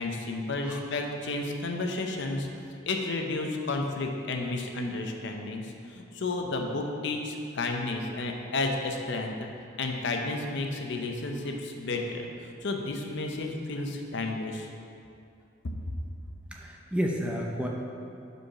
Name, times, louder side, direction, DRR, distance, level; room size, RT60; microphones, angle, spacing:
voice 1, 0.0-2.5 2.8-9.5 9.8-14.7, left 2 dB, 60° left, 2 dB, 0.6 m, -32 dB
voice 2, 16.5-17.7, equal, 5° right, -1 dB, 0.4 m, -31 dB
5.2 x 4.7 x 5.6 m, 2.6 s
head